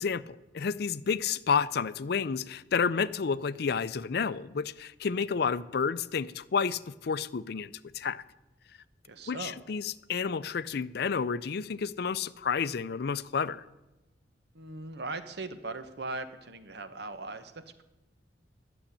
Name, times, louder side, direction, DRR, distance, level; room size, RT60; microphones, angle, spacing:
voice 1, 0.0-8.2 9.3-13.6, left 6 dB, 60° left, 0.5 m, -30 dB
voice 2, 9.0-9.6 14.5-17.5, right 3 dB, 65° right, 1.1 m, -39 dB
11.5 x 7.2 x 9.9 m
head